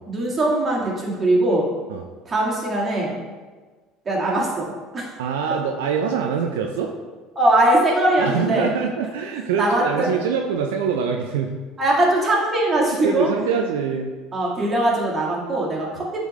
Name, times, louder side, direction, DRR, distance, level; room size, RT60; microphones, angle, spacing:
voice 1, 0.1-1.7 2.3-3.1 4.1-5.1 5.5-5.6 7.4-8.7 9.6-10.1 11.8-13.3 14.3-16.1, right 1 dB, 30° right, -3 dB, 1.8 m, -21 dB
voice 2, 5.2-6.9 8.2-11.6 13.0-14.1, right 6 dB, 75° right, 2 dB, 0.4 m, -24 dB
8.8 x 3.6 x 3.1 m, 1.4 s
hypercardioid pair, 70°, 0 cm